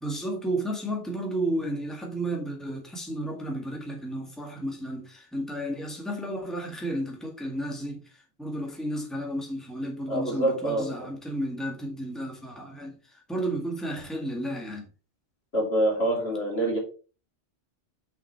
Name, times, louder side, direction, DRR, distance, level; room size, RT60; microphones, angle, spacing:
voice 1, 0.0-14.9, right 1 dB, ahead, 1.8 m, -32 dB
voice 2, 10.1-10.9 15.5-16.8, right 1 dB, 65° left, 3.3 m, -26 dB
6.0 x 5.4 x 4.5 m
omnidirectional pair, 1.1 m